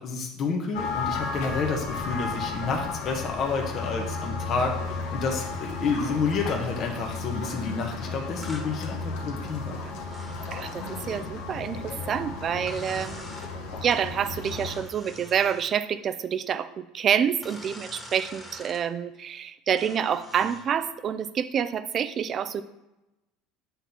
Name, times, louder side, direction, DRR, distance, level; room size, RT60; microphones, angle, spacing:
voice 1, 0.0-4.8 5.1-9.8, left 4 dB, 45° left, 1 dB, 1.2 m, -29 dB
sound 1, 0.7-14.8, left 4 dB, 75° left, 1.5 m, -34 dB
sound 2, 8.4-8.7 10.1-11.3 12.7-13.5 14.4-15.8 17.4-18.8 19.8-20.7, left 1 dB, 5° left, 1.6 m, -45 dB
voice 2, 10.5-22.6, right 8 dB, 40° right, 13 dB, 0.5 m, -28 dB
8.5 x 3.9 x 5.8 m, 0.95 s
supercardioid pair, 105°, 0 cm